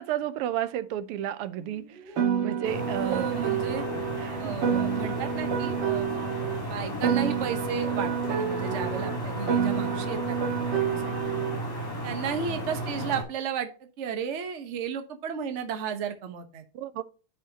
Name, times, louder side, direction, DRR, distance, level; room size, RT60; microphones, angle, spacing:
voice 1, 0.0-2.1 2.4-3.3 4.2-4.6 16.7-17.0, right 11 dB, 90° right, 1.6 m, -32 dB
sound 1, 1.6-4.3 4.6-7.6 7.8-11.4, equal, 80° left, 4.3 m, -44 dB
Piano, 2.2-6.6 7.0-11.6, right 8 dB, 60° right, 1.9 m, -29 dB
sound 2, 2.6-13.2, equal, 10° left, 2.4 m, -34 dB
voice 2, 2.9-3.8 4.4-6.1 6.7-11.0 12.0-13.7 14.0-16.6, right 7 dB, 45° right, 1.0 m, -33 dB
10.5 x 5.0 x 2.8 m
omnidirectional pair, 2.4 m